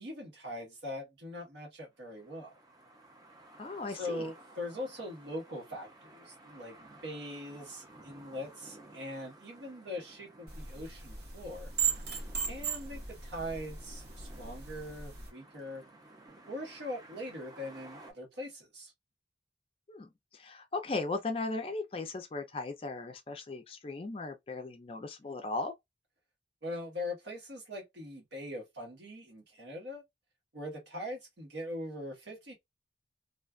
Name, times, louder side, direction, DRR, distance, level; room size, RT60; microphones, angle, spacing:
voice 1, 0.0-2.5 3.9-11.7 12.5-15.8 16.4-18.9 26.6-30.0 30.5-32.5, left 1 dB, 85° right, 1.1 m, -41 dB
sound 1, 1.9-18.1, right 2 dB, 20° right, 0.5 m, -56 dB
voice 2, 3.6-4.3 19.9-25.7, left 3 dB, 30° left, 0.3 m, -37 dB
sound 2, 10.5-15.3, right 7 dB, 65° right, 0.8 m, -37 dB
2.4 x 2.3 x 2.3 m
head